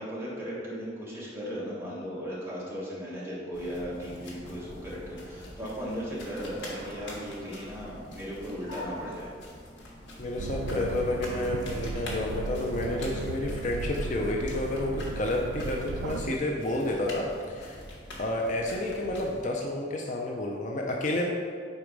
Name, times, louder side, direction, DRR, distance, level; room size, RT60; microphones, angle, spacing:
voice 1, 0.0-9.3, equal, 15° right, -7 dB, 1.4 m, -37 dB
sound 1, 3.5-19.4, left 1 dB, 70° left, 1.3 m, -45 dB
voice 2, 10.2-17.8 18.2-21.3, left 1 dB, 40° left, 0 dB, 0.5 m, -30 dB
sound 2, 10.4-16.4, right 4 dB, 80° right, 0.3 m, -36 dB
4.6 x 4.1 x 5.1 m, 2.1 s
head